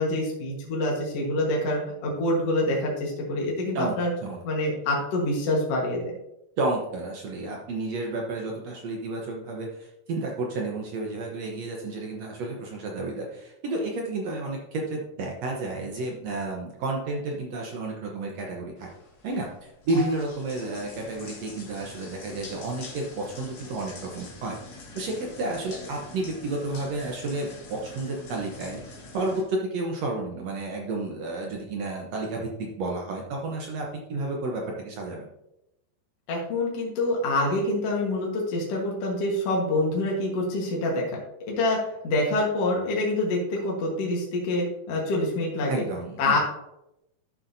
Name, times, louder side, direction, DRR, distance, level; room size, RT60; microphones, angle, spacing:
voice 1, 0.0-4.1 4.4-6.1 36.3-41.2 41.5-45.9 46.2-46.4, left 2 dB, 55° left, -2 dB, 2.2 m, -26 dB
voice 2, 6.6-18.9 19.2-24.6 25.0-28.8 29.1-35.3 45.7-46.4, right 2 dB, 65° right, 0 dB, 1.8 m, -31 dB
sound 1, 18.8-29.4, left 2 dB, 70° left, 0.9 m, -44 dB
12.0 x 7.2 x 2.7 m, 0.86 s
omnidirectional pair, 3.9 m